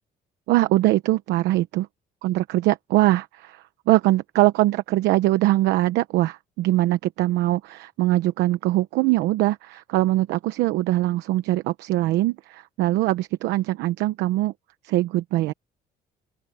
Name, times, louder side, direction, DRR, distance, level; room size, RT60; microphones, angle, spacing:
voice 1, 0.5-1.9 2.2-14.5 14.8-15.5, right 16 dB, 90° right, 1.0 m, -22 dB
open air
cardioid pair, 110°, 17 cm